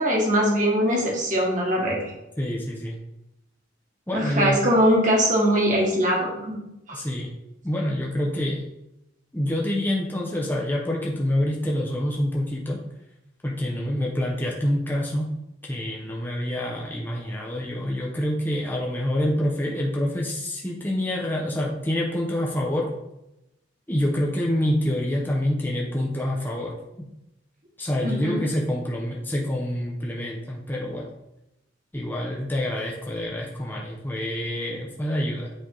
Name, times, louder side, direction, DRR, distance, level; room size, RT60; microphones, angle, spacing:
voice 1, 0.0-2.1 4.1-6.6 6.9-7.0 28.0-28.4, equal, 40° right, -2 dB, 1.7 m, -22 dB
voice 2, 2.4-3.0 4.1-4.6 6.9-7.3 7.6-8.6 9.3-12.8 13.4-15.3 15.6-22.9 23.9-26.7 27.0-27.1 27.8-31.1 31.9-35.5, left 1 dB, 10° left, -3 dB, 0.7 m, -26 dB
8.6 x 3.4 x 3.9 m, 0.90 s
head